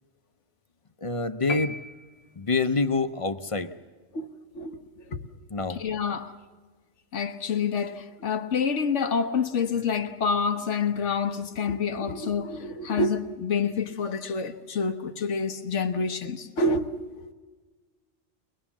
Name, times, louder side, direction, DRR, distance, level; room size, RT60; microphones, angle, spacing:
voice 1, 1.0-1.8 2.4-3.7 5.5-5.8, left 3 dB, 35° left, 0.7 m, -26 dB
sound 1, 1.5-2.7, left 3 dB, 65° left, 1.2 m, -36 dB
voice 2, 4.1-5.3 5.7-6.3 7.1-17.3, left 4 dB, 85° left, 1.5 m, -28 dB
22.5 x 21.5 x 7.2 m
omnidirectional pair, 1.2 m